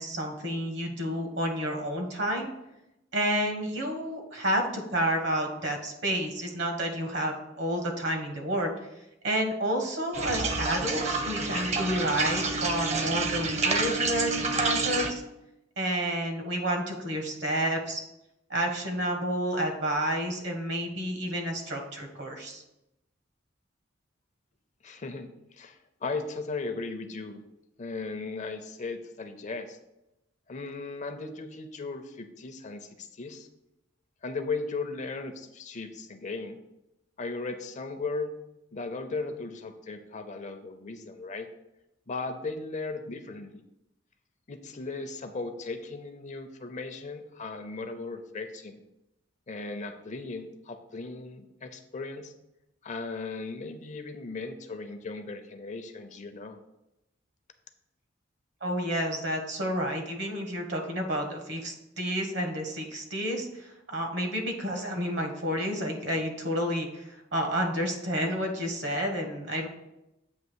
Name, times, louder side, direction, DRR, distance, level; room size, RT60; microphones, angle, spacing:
voice 1, 0.0-2.5 3.1-8.7 9.2-15.2 15.8-18.0 18.5-22.6 58.6-69.7, equal, 65° right, 3 dB, 1.4 m, -30 dB
sound 1, 10.1-15.1, right 3 dB, 35° right, 0.7 m, -28 dB
voice 2, 24.8-27.4 27.8-29.8 30.5-33.5 34.2-36.6 37.2-38.4 38.7-41.5 42.1-43.6 44.5-48.8 49.5-52.3 52.8-56.6, left 3 dB, 40° left, 8 dB, 0.6 m, -37 dB
8.1 x 2.9 x 6.1 m, 0.90 s
head